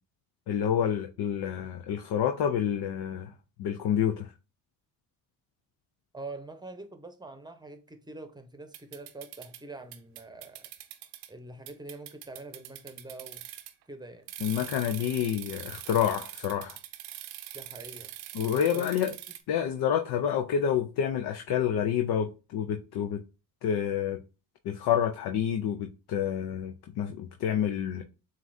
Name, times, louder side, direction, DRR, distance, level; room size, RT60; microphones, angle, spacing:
voice 1, 0.5-3.3 3.6-4.3 14.4-16.8 18.3-19.1 19.5-23.2 23.6-24.2 24.6-28.0, left 9 dB, 65° left, 0.6 m, -28 dB
voice 2, 6.1-10.7 11.3-13.4 13.9-14.3 17.5-18.1 18.7-18.9, right 2 dB, 10° right, 0.8 m, -44 dB
sound 1, 8.7-9.6 9.9-11.3 11.7-13.8 14.3-19.4, right 13 dB, 80° right, 0.7 m, -43 dB
7.2 x 2.5 x 2.6 m
supercardioid pair, 75°, 42 cm